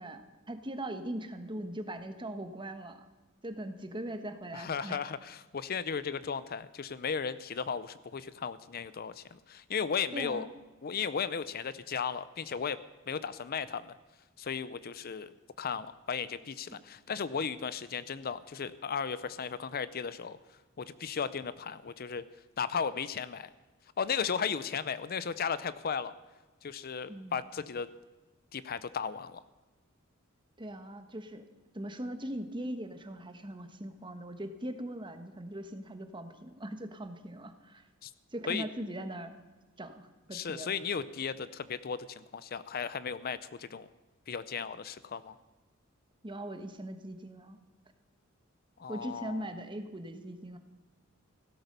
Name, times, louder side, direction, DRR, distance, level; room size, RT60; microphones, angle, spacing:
voice 1, 0.0-3.0 3.4-5.0 10.1-10.5 16.7-16.8 27.1-27.4 30.6-31.4 31.7-37.8 38.3-39.3 39.8-40.8 46.2-47.6 48.9-50.6, right 1 dB, 25° right, 8 dB, 1.3 m, -40 dB
voice 2, 4.5-10.4 10.8-12.8 13.1-13.9 14.4-15.3 15.6-20.4 20.8-22.2 22.6-23.5 24.0-26.1 26.6-27.9 28.5-29.4 38.0-38.1 38.5-38.7 40.3-43.9 44.3-45.4 48.8-49.5, left 6 dB, 45° left, 15 dB, 0.5 m, -35 dB
16.0 x 12.5 x 6.7 m, 1.2 s
head